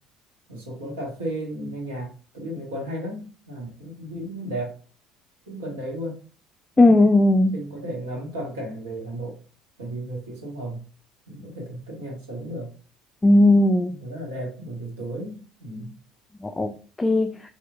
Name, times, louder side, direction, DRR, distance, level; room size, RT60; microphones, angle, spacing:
voice 1, 0.5-4.8 5.4-6.2 6.8-6.9 7.5-9.4 9.8-10.8 11.3-12.7 13.9-15.9, right 1 dB, 80° right, 1.2 m, -34 dB
voice 2, 6.8-7.5 13.2-13.9 16.4-17.3, left 2 dB, 20° left, 0.4 m, -17 dB
4.0 x 3.0 x 2.3 m
figure-of-eight pair, 60°, 0 cm